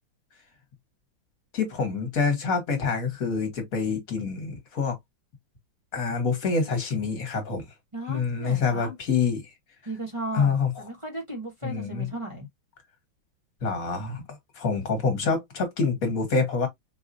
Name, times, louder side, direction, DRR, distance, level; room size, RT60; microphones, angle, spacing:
voice 1, 1.5-5.0 5.9-7.6 8.1-9.4 10.3-10.7 11.6-12.1 13.6-14.2 14.5-16.7, left 5 dB, 50° left, 1.6 m, -26 dB
voice 2, 7.9-9.0 9.8-12.5, right 1 dB, 20° right, 0.8 m, -36 dB
4.6 x 2.3 x 2.6 m
omnidirectional pair, 2.2 m